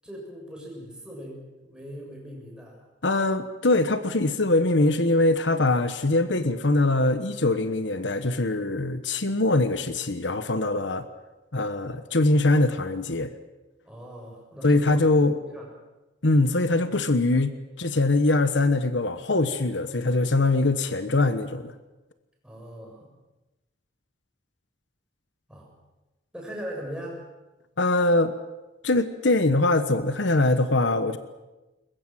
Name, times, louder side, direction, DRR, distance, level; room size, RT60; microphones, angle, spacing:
voice 1, 0.0-2.8 13.8-15.7 16.2-16.5 22.4-23.1 25.5-25.7 26.3-27.3, equal, 5° right, -2 dB, 7.1 m, -40 dB
voice 2, 3.0-11.1 11.5-13.3 14.6-15.3 16.2-21.7 27.8-28.3 28.8-31.2, left 2 dB, 75° left, 11 dB, 1.2 m, -22 dB
22.0 x 21.5 x 7.6 m, 1.1 s
head